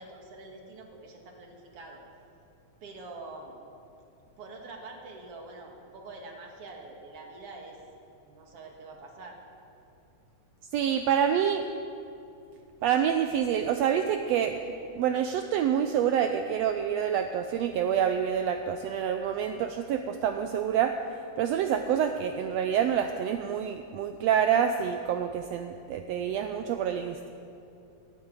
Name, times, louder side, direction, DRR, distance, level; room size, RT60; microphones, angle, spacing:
voice 1, 0.0-2.0 2.8-3.5 4.4-7.8 8.2-9.4, right 3 dB, 55° right, 1 dB, 2.4 m, -45 dB
voice 2, 10.7-11.6 12.8-14.6 14.9-20.9 21.4-27.3, right 8 dB, 85° right, 7 dB, 1.5 m, -27 dB
11.0 x 10.5 x 8.9 m, 2.7 s
omnidirectional pair, 3.5 m